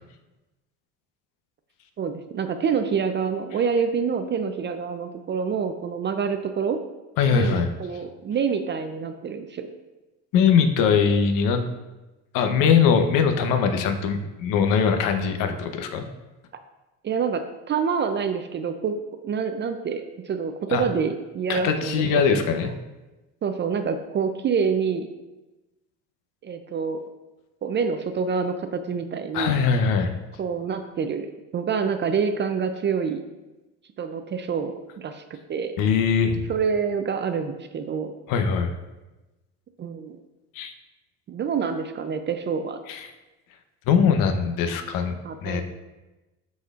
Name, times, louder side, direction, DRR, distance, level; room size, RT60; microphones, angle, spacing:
voice 1, 2.0-6.8 7.3-9.7 17.0-18.9 19.2-22.0 23.4-25.1 26.4-27.0 27.6-29.5 30.4-31.3 31.5-33.2 34.0-35.2 35.5-35.7 36.5-38.1 39.8-40.2 41.3-42.8 45.2-45.6, right 6 dB, 30° right, 7 dB, 0.5 m, -27 dB
voice 2, 7.2-7.7 10.3-11.6 12.3-16.0 20.7-20.9 21.5-22.7 29.3-30.1 35.8-36.4 38.3-38.7 40.5-40.7 42.9-43.1 43.9-45.6, left 6 dB, 65° left, 6 dB, 0.9 m, -21 dB
12.0 x 4.2 x 2.5 m, 1.1 s
supercardioid pair, 100°, 35 cm